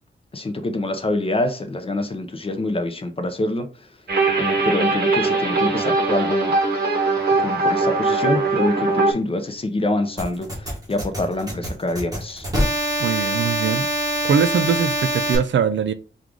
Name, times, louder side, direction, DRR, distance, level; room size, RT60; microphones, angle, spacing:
voice 1, 0.3-3.7 4.4-6.5 7.4-12.5, left 2 dB, 30° left, 0.5 m, -25 dB
sound 1, 4.1-9.1, right 3 dB, 50° right, 0.9 m, -20 dB
sound 2, 10.2-15.4, equal, 15° right, 1.5 m, -24 dB
voice 2, 13.0-13.9 14.2-15.9, right 7 dB, 65° right, 0.4 m, -21 dB
4.6 x 2.4 x 3.8 m
wide cardioid pair, 180°, 21 cm